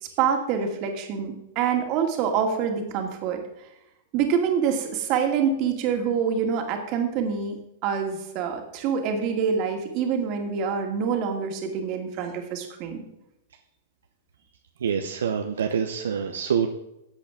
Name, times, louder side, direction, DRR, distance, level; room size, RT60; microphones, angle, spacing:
voice 1, 0.0-3.4 4.1-7.6 7.8-13.1, right 7 dB, 45° right, 4 dB, 2.2 m, -26 dB
voice 2, 14.8-16.7, right 7 dB, 75° right, 5 dB, 0.8 m, -26 dB
13.5 x 8.1 x 3.6 m, 0.89 s
hypercardioid pair, 105°, 0 cm